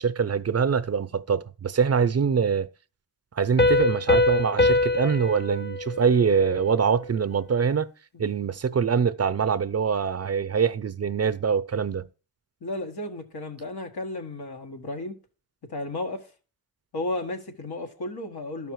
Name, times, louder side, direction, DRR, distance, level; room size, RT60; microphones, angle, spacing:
voice 1, 0.0-2.7 3.4-7.9 8.2-12.1, right 6 dB, 40° right, 0.6 m, -24 dB
Piano, 3.6-7.0, left 2 dB, 30° left, 0.6 m, -24 dB
voice 2, 12.6-15.2 15.7-16.3 16.9-18.7, left 2 dB, 90° left, 1.7 m, -33 dB
12.5 x 5.7 x 4.6 m
cardioid pair, 65°, 37 cm